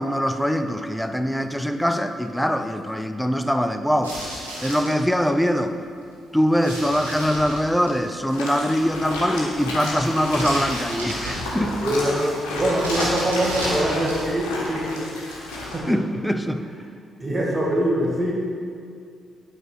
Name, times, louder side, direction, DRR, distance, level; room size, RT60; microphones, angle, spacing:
voice 1, 0.0-4.2 4.6-5.8 6.3-11.8 15.9-16.6, equal, 5° left, 8 dB, 0.6 m, -23 dB
sound 1, 4.0-5.0 6.6-8.1 10.2-11.8 12.7-14.4, right 1 dB, 85° right, 1.3 m, -32 dB
sound 2, 8.3-15.8, left 2 dB, 75° left, 1.4 m, -32 dB
voice 2, 11.8-15.1 15.6-15.9 17.2-18.3, right 1 dB, 20° right, -4 dB, 2.1 m, -23 dB
9.0 x 4.1 x 6.3 m, 2.2 s
figure-of-eight pair, 40°, 0 cm